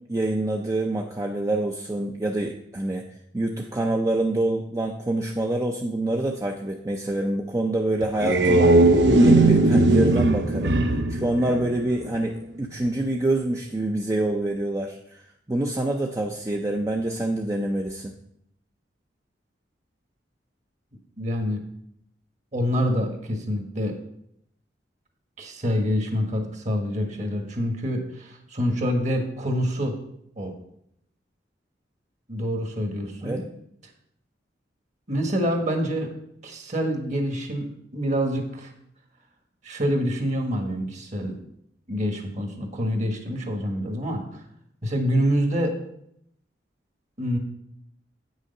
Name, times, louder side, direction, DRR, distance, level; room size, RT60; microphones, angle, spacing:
voice 1, 0.1-3.0 3.3-10.8 11.1-18.1 33.2-33.5, right 1 dB, 20° right, 1 dB, 0.5 m, -26 dB
sound 1, 8.0-12.2, right 2 dB, 70° right, 0.7 m, -19 dB
voice 2, 21.2-21.6 22.5-24.0 25.4-29.9 30.4-30.5 32.3-33.5 35.1-36.1 36.4-37.6 37.9-38.7 39.6-41.3 41.9-44.4 44.8-45.7 47.2-47.4, equal, 40° right, 4 dB, 1.5 m, -26 dB
8.6 x 6.4 x 5.4 m, 0.74 s
head